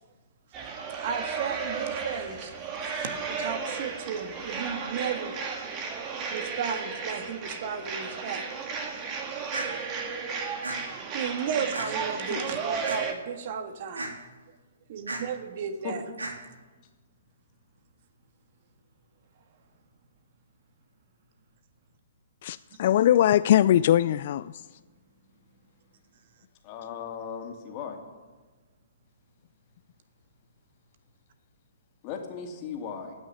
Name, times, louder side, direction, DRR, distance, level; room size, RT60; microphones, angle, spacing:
sound 1, 0.5-13.1, right 5 dB, 30° right, 2.1 m, -34 dB
voice 1, 1.0-2.5 2.8-5.4 6.3-8.4 11.1-14.1 14.9-16.0, right 7 dB, 50° right, 8 dB, 1.6 m, -34 dB
sound 2, 9.5-9.7 10.6-10.8 11.7-11.9 12.9-13.0 14.0-14.1 15.1-15.2 16.2-16.3, right 2 dB, 80° right, 3.0 m, -33 dB
voice 2, 22.4-24.5, left 11 dB, 50° left, 15 dB, 0.3 m, -21 dB
voice 3, 26.6-28.0 32.0-33.1, left 7 dB, 35° left, 2 dB, 2.8 m, -37 dB
17.0 x 6.3 x 9.9 m, 1.3 s
figure-of-eight pair, 125°, 0 cm